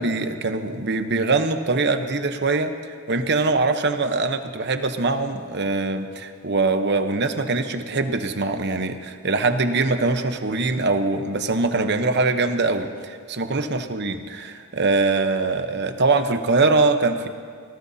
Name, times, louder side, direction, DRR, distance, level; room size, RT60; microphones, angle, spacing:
voice 1, 0.0-17.3, right 3 dB, 55° right, 8 dB, 0.9 m, -23 dB
25.5 x 18.0 x 2.8 m, 2.1 s
head